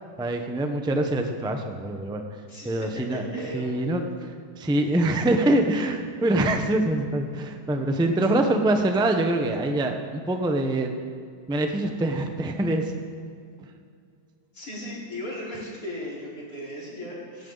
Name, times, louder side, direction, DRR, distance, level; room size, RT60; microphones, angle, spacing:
voice 1, 0.2-2.2 2.6-10.9 11.5-12.9, right 1 dB, 5° right, 5 dB, 0.6 m, -24 dB
voice 2, 2.5-3.8 14.5-17.5, equal, 50° left, -7 dB, 4.9 m, -37 dB
18.0 x 16.5 x 4.0 m, 2.3 s
omnidirectional pair, 2.0 m